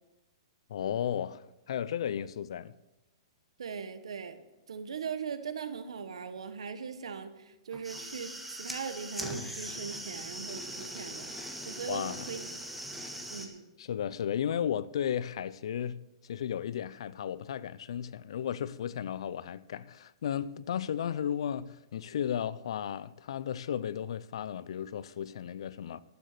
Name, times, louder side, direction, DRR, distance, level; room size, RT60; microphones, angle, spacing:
voice 1, 0.7-2.7 11.9-12.3 13.8-26.0, left 9 dB, 70° left, 0.6 m, -34 dB
voice 2, 3.6-4.4 4.7-11.3 11.6-12.5 13.3-13.6, right 6 dB, 90° right, 1.5 m, -40 dB
sound 1, 7.7-13.5, equal, ahead, 1.6 m, -41 dB
12.0 x 9.1 x 6.8 m
hypercardioid pair, 145°, 3 cm